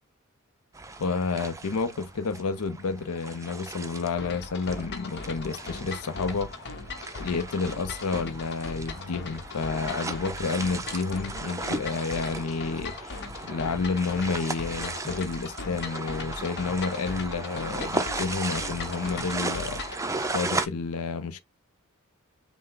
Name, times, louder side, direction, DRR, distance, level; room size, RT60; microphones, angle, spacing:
sound 1, 0.7-20.7, right 3 dB, 15° right, 0.5 m, -36 dB
voice 1, 1.0-6.6 7.2-21.4, left 4 dB, 75° left, 0.6 m, -30 dB
sound 2, 4.2-20.0, left 4 dB, 50° left, 0.9 m, -39 dB
5.6 x 2.1 x 3.8 m
head